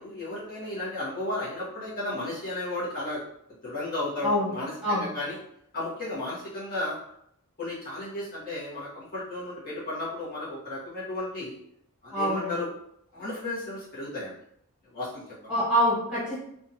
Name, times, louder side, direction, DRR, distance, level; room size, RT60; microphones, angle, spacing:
voice 1, 0.0-3.2 3.6-5.4 5.7-7.0 7.6-11.6 12.0-12.7 13.1-14.3 14.9-15.5, left 2 dB, 40° left, -10 dB, 1.0 m, -34 dB
voice 2, 12.1-12.5 15.5-16.4, equal, 5° right, -9 dB, 1.3 m, -25 dB
2.6 x 2.3 x 2.7 m, 0.73 s
head